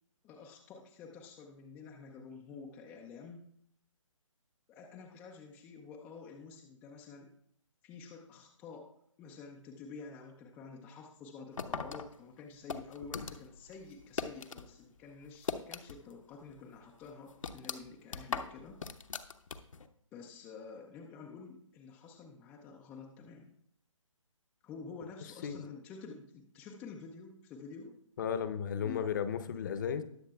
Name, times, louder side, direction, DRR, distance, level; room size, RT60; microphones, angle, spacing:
voice 1, 0.2-3.4 4.7-7.3 7.8-8.9 9.2-18.8 20.1-23.6 24.6-28.0 28.8-29.7, left 5 dB, 5° left, -1 dB, 0.3 m, -49 dB
sound 1, 11.6-14.7 15.0-16.2 16.5-16.6 17.0-19.9, left 5 dB, 70° left, 0.8 m, -40 dB
voice 2, 28.2-30.0, left 7 dB, 35° left, 12 dB, 0.7 m, -34 dB
19.5 x 6.5 x 2.3 m, 0.68 s
figure-of-eight pair, 145°, 17 cm